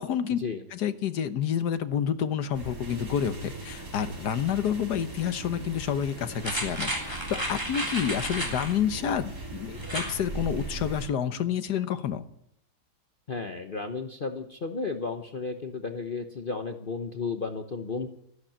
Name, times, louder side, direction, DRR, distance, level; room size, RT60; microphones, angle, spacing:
voice 1, 0.0-0.4 0.7-12.3, left 8 dB, 80° left, 12 dB, 1.6 m, -29 dB
sound 1, 2.5-11.1, right 2 dB, 75° right, 5.1 m, -39 dB
sound 2, 6.4-8.8 9.8-10.2 10.6-10.7, right 1 dB, 15° right, 3.2 m, -32 dB
voice 2, 13.3-18.1, left 4 dB, 40° left, 6 dB, 1.0 m, -33 dB
13.5 x 11.5 x 8.8 m, 0.73 s
omnidirectional pair, 1.7 m